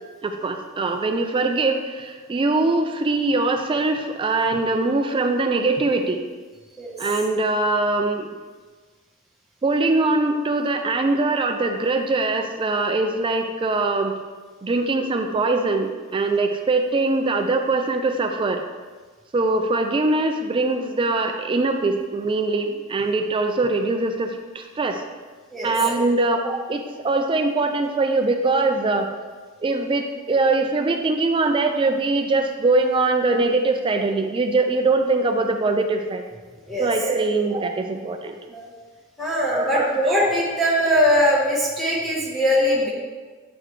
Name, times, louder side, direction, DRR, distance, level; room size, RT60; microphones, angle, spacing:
voice 1, 0.2-6.2 7.0-8.3 9.6-14.1 14.6-18.6 19.3-25.0 25.6-29.1 29.6-36.2 36.8-38.4 39.5-40.1, right 3 dB, 25° right, 5 dB, 0.3 m, -22 dB
voice 2, 39.2-42.9, equal, ahead, -8 dB, 1.0 m, -21 dB
7.7 x 3.9 x 3.1 m, 1.4 s
head